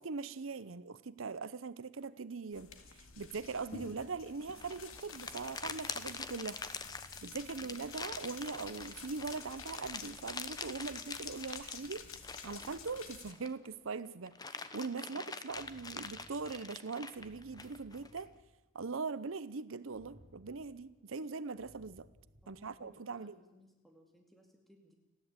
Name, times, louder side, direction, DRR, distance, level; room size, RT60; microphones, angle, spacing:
voice 1, 0.0-6.6 7.2-12.1 12.4-18.3 18.7-22.1 22.5-23.4, right 4 dB, 75° right, 15 dB, 0.7 m, -41 dB
sound 1, 2.5-13.3, left 5 dB, 85° left, 2.2 m, -51 dB
sound 2, 4.4-13.7 14.0-18.2, left 4 dB, 20° left, 0.9 m, -45 dB
sound 3, 15.5-18.5 19.9-21.0 21.5-22.8, equal, 30° right, 6.9 m, -61 dB
voice 2, 22.4-24.9, equal, ahead, 2 dB, 2.5 m, -63 dB
29.5 x 11.0 x 8.8 m, 1.1 s
head